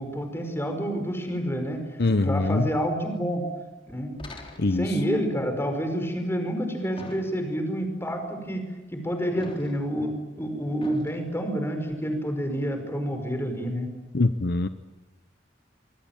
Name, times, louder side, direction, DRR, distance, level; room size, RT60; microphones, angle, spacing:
voice 1, 0.0-1.8 2.2-3.4 3.9-4.1 4.7-8.6 8.9-13.9, equal, 15° left, 5 dB, 5.1 m, -28 dB
voice 2, 2.0-2.6 4.6-4.9 14.1-14.7, left 2 dB, 60° left, 11 dB, 0.9 m, -23 dB
sound 1, 4.2-5.0 7.0-7.7 9.4-10.0 10.8-11.2, left 1 dB, 30° left, 3.9 m, -43 dB
25.5 x 23.0 x 9.0 m, 1.1 s
head